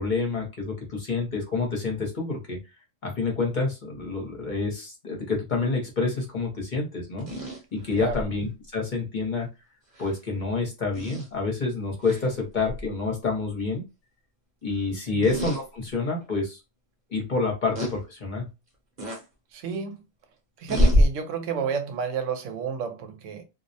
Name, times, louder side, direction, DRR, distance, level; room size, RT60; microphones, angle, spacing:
voice 1, 0.0-2.6 3.0-7.3 7.7-9.5 10.0-13.8 14.6-16.6 17.1-18.5, left 3 dB, 45° left, 0.8 m, -28 dB
sound 1, 7.2-8.3 10.0-10.1 10.9-11.3 12.0-12.3 12.7-12.9 15.2-15.6 16.2-16.3 17.8-17.9 19.0-19.2 20.7-21.1, left 1 dB, 50° right, 1.0 m, -24 dB
voice 2, 19.5-20.0 20.6-23.4, right 6 dB, 90° right, 1.0 m, -31 dB
2.4 x 2.1 x 2.6 m
omnidirectional pair, 1.3 m